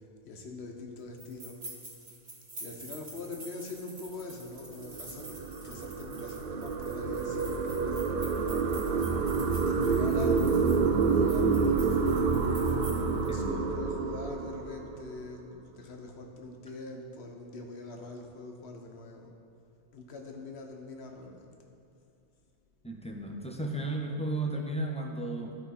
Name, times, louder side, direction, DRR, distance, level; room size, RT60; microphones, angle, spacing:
voice 1, 0.2-1.7 2.6-8.3 9.3-12.3 13.2-19.3 19.9-21.5, left 3 dB, 70° left, 2 dB, 1.1 m, -43 dB
sound 1, 1.2-13.3, right 2 dB, 75° right, 2.1 m, -48 dB
Descending bass frequences, 4.6-15.2, right 4 dB, 60° right, 0.7 m, -28 dB
voice 2, 13.0-13.8 22.8-25.6, right 2 dB, 10° left, 0 dB, 0.5 m, -35 dB
12.5 x 4.4 x 4.2 m, 2.5 s
omnidirectional pair, 1.1 m